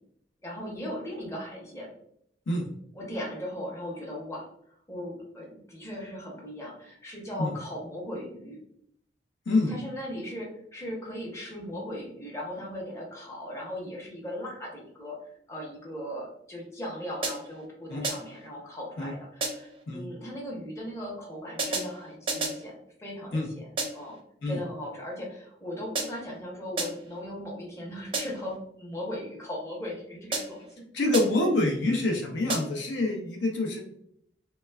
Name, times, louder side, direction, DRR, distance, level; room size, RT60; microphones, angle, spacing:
voice 1, 0.4-1.9 2.9-4.5 4.9-8.6 9.7-15.2 15.5-23.7 23.9-24.2 24.5-30.7, equal, 15° left, -3 dB, 0.7 m, -38 dB
sound 1, 17.2-17.7 18.0-18.5 19.4-19.8 21.6-22.7 23.8-24.2 26.0-26.4 26.8-27.2 28.1-28.6 30.3-30.7 31.1-31.6 32.5-32.9, right 3 dB, 30° right, 0.5 m, -33 dB
voice 2, 30.9-33.8, left 2 dB, 75° left, 1 dB, 0.5 m, -26 dB
3.1 x 2.2 x 2.2 m, 0.70 s
head